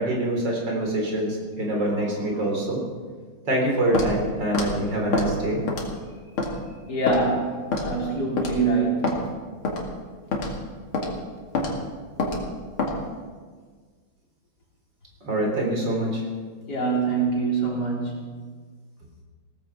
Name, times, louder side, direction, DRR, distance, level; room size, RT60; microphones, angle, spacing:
voice 1, 0.0-2.8 3.5-5.6 15.2-16.2, right 1 dB, 55° right, -1 dB, 4.4 m, -25 dB
Walk footsteps, 3.9-4.1 4.5-4.7 5.1-5.3 5.7-6.0 6.4-6.5 7.1-7.2 7.7-7.9 8.4-8.6 9.0-9.2 9.6-9.8 10.3-10.5 10.9-11.1 11.5-11.7 12.2-12.4 12.8-13.0, left 3 dB, 85° left, 3.0 m, -25 dB
voice 2, 6.9-9.4 16.7-18.4, right 3 dB, 50° left, -4 dB, 4.2 m, -25 dB
17.0 x 14.5 x 4.8 m, 1.5 s
omnidirectional pair, 2.3 m